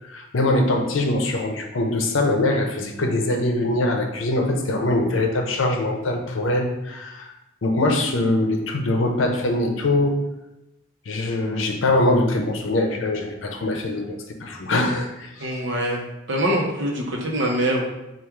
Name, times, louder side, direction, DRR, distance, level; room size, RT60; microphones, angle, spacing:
voice 1, 0.0-7.3 7.6-10.2 11.1-15.5, left 2 dB, 80° left, 3 dB, 0.6 m, -23 dB
voice 2, 15.4-16.0 16.3-17.8, right 1 dB, 65° right, -1 dB, 0.8 m, -23 dB
4.5 x 2.4 x 3.6 m, 0.93 s
head